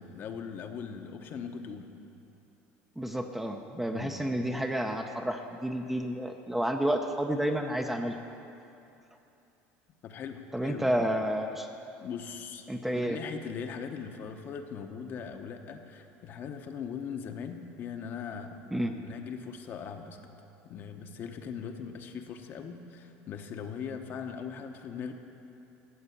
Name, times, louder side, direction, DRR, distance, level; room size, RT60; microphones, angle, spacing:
voice 1, 0.0-1.9 3.9-4.2 10.0-11.1 12.0-12.6 12.9-18.6 19.0-20.2 20.6-25.1, left 6 dB, 45° left, 5 dB, 1.0 m, -40 dB
voice 2, 3.0-8.2 10.5-11.7 12.7-13.2 18.7-18.9, right 1 dB, 5° right, 4 dB, 0.6 m, -30 dB
14.0 x 6.9 x 8.4 m, 2.8 s
cardioid pair, 140°, 5 cm